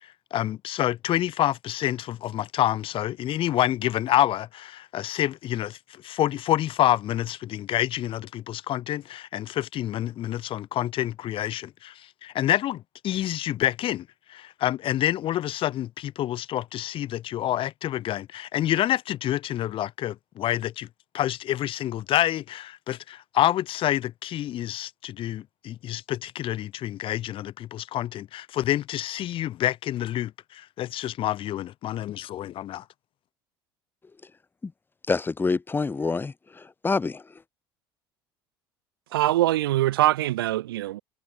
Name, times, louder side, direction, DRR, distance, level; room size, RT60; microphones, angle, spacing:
voice 1, 0.0-20.9 21.1-32.8, left 13 dB, 45° left, 1.0 m, -28 dB
voice 2, 35.1-37.3, left 4 dB, 15° left, 0.7 m, -27 dB
voice 3, 39.1-41.0, right 15 dB, 70° right, 0.4 m, -23 dB
figure-of-eight pair, 65°, 13 cm